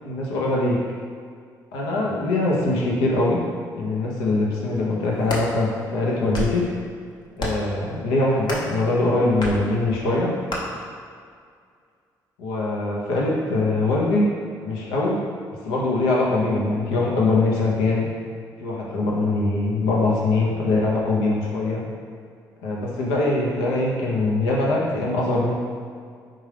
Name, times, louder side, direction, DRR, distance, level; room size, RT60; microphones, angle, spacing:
voice 1, 0.0-0.8 1.7-3.4 3.8-6.6 7.4-10.3 12.4-14.3 14.6-15.2 15.7-18.1 18.6-21.8 22.6-25.5, left 2 dB, 90° left, -4 dB, 0.7 m, -22 dB
sound 1, 5.0-5.5 6.1-6.6 7.4-7.7 8.4-8.7 9.4-9.6 10.5-10.6, left 1 dB, 55° left, 0.8 m, -29 dB
3.7 x 2.8 x 3.3 m, 2.1 s
supercardioid pair, 60°, 9 cm